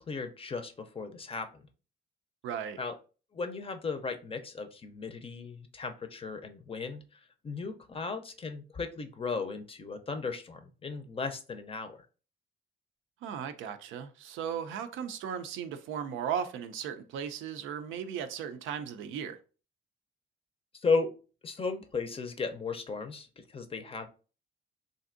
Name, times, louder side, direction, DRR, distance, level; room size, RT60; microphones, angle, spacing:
voice 1, 0.0-1.6 2.8-2.9 3.3-12.1 20.7-21.1 21.4-24.1, left 4 dB, 30° left, 0.5 m, -35 dB
voice 2, 2.4-2.8 13.2-19.4, right 8 dB, 85° right, 0.4 m, -36 dB
3.3 x 2.6 x 2.5 m
cardioid pair, 90°, 20 cm